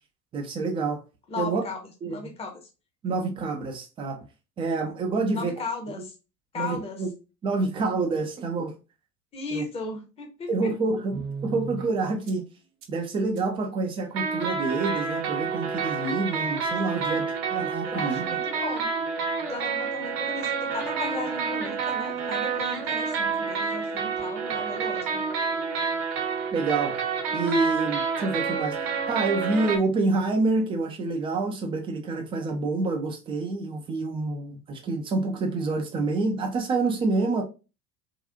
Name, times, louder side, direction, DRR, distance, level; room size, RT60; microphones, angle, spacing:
voice 1, 0.3-1.0 1.4-1.6 2.0-2.2 3.0-4.2 4.6-5.5 6.5-7.1 7.4-8.7 9.5-9.6 10.5-12.4 12.9-18.4 26.5-27.0 27.3-28.8 29.1-37.4, right 3 dB, 10° right, 0.4 m, -27 dB
voice 2, 1.3-2.7 5.3-6.1 6.5-7.0 9.3-10.7 16.9-17.2 17.8-18.9 19.5-25.3, left 3 dB, 10° left, 0.7 m, -36 dB
sound 1, 11.1-11.9 12.3-12.4 12.8-12.9 13.4-13.5 14.1-29.8, right 5 dB, 65° right, 1.0 m, -29 dB
3.6 x 2.3 x 2.6 m
figure-of-eight pair, 80°, 50 cm